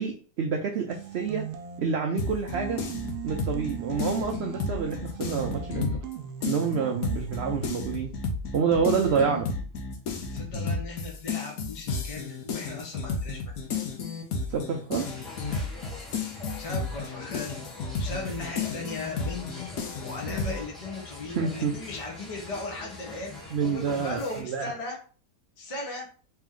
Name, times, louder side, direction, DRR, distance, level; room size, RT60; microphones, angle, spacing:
voice 1, 0.0-1.4 1.8-2.8 3.2-5.9 6.4-8.1 8.5-9.5 14.5-15.1 21.3-21.7 23.5-24.7, right 6 dB, 70° right, 3 dB, 0.6 m, -28 dB
sound 1, 0.9-2.0 2.5-7.7, right 9 dB, 90° right, 1.1 m, -39 dB
sound 2, 2.2-6.1 6.4-20.6, left 4 dB, 70° left, 1.2 m, -32 dB
voice 2, 10.3-13.4 16.6-17.6 17.9-19.7 20.0-25.0 25.6-26.1, left 3 dB, 30° left, -1 dB, 0.7 m, -37 dB
sound 3, 14.9-24.4, left 2 dB, ahead, 0.9 m, -43 dB
3.3 x 2.9 x 3.6 m, 0.40 s
omnidirectional pair, 1.6 m